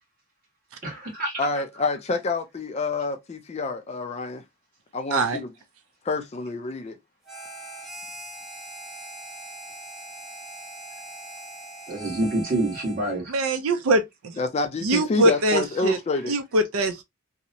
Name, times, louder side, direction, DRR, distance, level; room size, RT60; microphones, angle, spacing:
voice 1, 0.8-1.5 11.9-13.3 15.5-15.9, right 1 dB, 40° right, 1.2 m, -28 dB
voice 2, 1.4-4.4 4.9-5.5 6.0-7.0 14.4-16.4, left 3 dB, 30° left, 0.3 m, -28 dB
Harmonica, 7.2-13.3, right 2 dB, ahead, 0.8 m, -41 dB
voice 3, 13.3-14.0 14.8-16.0 16.3-17.0, right 1 dB, 75° right, 0.4 m, -22 dB
2.8 x 2.0 x 2.5 m
head